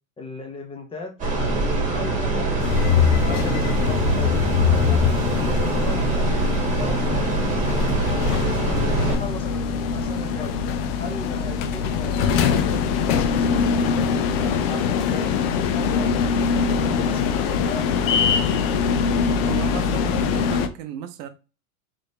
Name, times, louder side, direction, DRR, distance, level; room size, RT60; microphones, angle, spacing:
voice 1, 0.2-5.0 5.3-6.4 6.8-10.6 11.0-16.2 16.6-18.6, left 3 dB, 15° left, 0.9 m, -37 dB
sound 1, 1.2-9.2, right 2 dB, 15° right, 1.6 m, -23 dB
sound 2, 2.6-20.7, left 6 dB, 45° left, 0.6 m, -23 dB
voice 2, 19.4-21.3, right 11 dB, 45° right, 0.8 m, -34 dB
3.7 x 3.3 x 2.7 m
hypercardioid pair, 120°, 43 cm